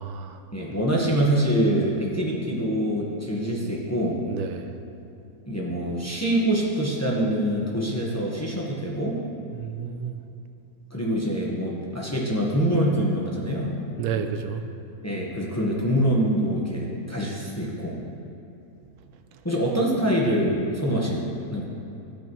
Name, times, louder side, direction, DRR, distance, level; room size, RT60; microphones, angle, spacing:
voice 1, 0.0-0.4 4.3-4.7 9.5-10.2 14.0-14.6 19.7-19.8, right 7 dB, 90° right, 7 dB, 1.1 m, -31 dB
voice 2, 0.5-4.2 5.5-9.2 10.9-13.8 15.0-18.0 19.4-21.7, equal, 10° left, -4 dB, 1.0 m, -25 dB
12.5 x 8.5 x 3.0 m, 2.8 s
omnidirectional pair, 1.6 m